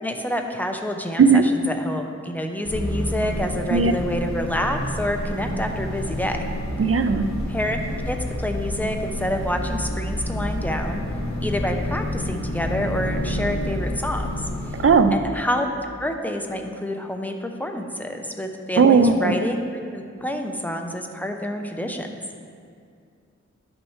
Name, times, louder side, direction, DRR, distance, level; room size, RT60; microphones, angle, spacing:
voice 1, 0.0-6.5 7.5-11.0 11.4-14.4 15.1-15.7 16.0-22.1, left 1 dB, 5° left, 3 dB, 0.7 m, -28 dB
sound 1, 2.6-15.0, left 1 dB, 70° left, 1.3 m, -29 dB
voice 2, 6.8-7.3 14.8-15.2 18.8-19.3, right 5 dB, 50° right, 8 dB, 0.5 m, -16 dB
10.5 x 6.2 x 3.2 m, 2.3 s
wide cardioid pair, 70°, 29 cm